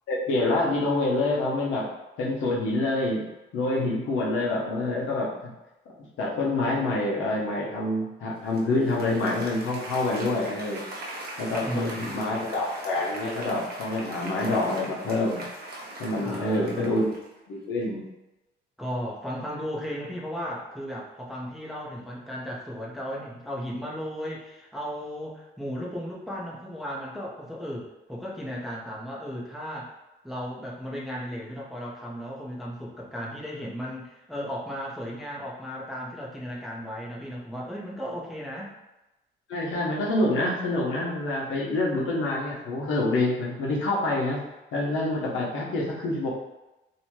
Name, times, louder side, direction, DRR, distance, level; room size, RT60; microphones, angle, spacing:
voice 1, 0.1-1.9 2.2-3.2 3.5-5.3 6.2-10.8 11.4-15.4 16.0-17.2 17.5-18.0 39.5-44.4 44.7-46.3, left 2 dB, 85° left, -3 dB, 0.8 m, -26 dB
Applause, 8.5-17.4, right 1 dB, 50° right, 0.7 m, -40 dB
voice 2, 11.6-12.5 16.2-17.0 18.8-29.9 30.2-38.7, equal, ahead, -4 dB, 0.6 m, -35 dB
2.8 x 2.2 x 3.0 m, 1.0 s
cardioid pair, 90°, 20 cm